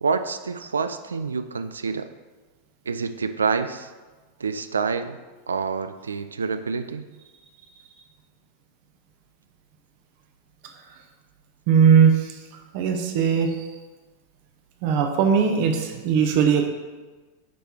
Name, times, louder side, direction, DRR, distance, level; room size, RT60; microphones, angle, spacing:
voice 1, 0.0-2.1 2.9-3.9 4.4-5.2 5.5-7.1, right 5 dB, 70° right, 10 dB, 0.4 m, -27 dB
voice 2, 11.7-12.4 12.7-13.7 14.8-16.7, right 7 dB, 45° right, 4 dB, 0.8 m, -19 dB
9.3 x 3.4 x 4.4 m, 1.3 s
figure-of-eight pair, 90°, 0 cm